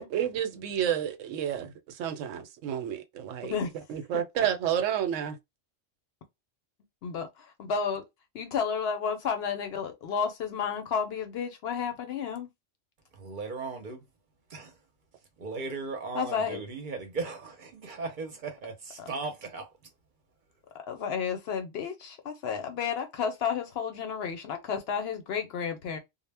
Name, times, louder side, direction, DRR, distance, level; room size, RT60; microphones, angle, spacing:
voice 1, 0.0-3.5 3.9-5.4, right 9 dB, 85° right, 0.9 m, -30 dB
voice 2, 7.0-8.1 8.3-12.5 16.1-16.6 20.9-26.0, left 6 dB, 65° left, 0.7 m, -31 dB
voice 3, 13.1-14.0 14.5-14.8 15.4-19.7, right 4 dB, 50° right, 0.7 m, -37 dB
2.1 x 2.0 x 3.3 m
omnidirectional pair, 1.3 m